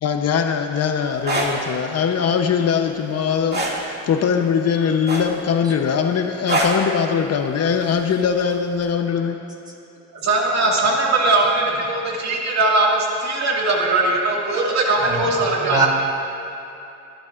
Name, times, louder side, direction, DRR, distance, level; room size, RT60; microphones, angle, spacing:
voice 1, 0.0-9.4, left 7 dB, 55° left, 5 dB, 0.9 m, -21 dB
sound 1, 1.1-1.5 3.5-3.8 5.1-5.5 6.5-6.8 8.2-8.4, right 1 dB, 35° right, 2.3 m, -22 dB
voice 2, 10.1-15.9, right 2 dB, 60° right, -2 dB, 2.2 m, -20 dB
voice 3, 15.0-15.3 15.6-15.9, right 1 dB, 15° right, -2 dB, 3.4 m, -24 dB
26.5 x 11.5 x 2.6 m, 2.8 s
cardioid pair, 90°, 30 cm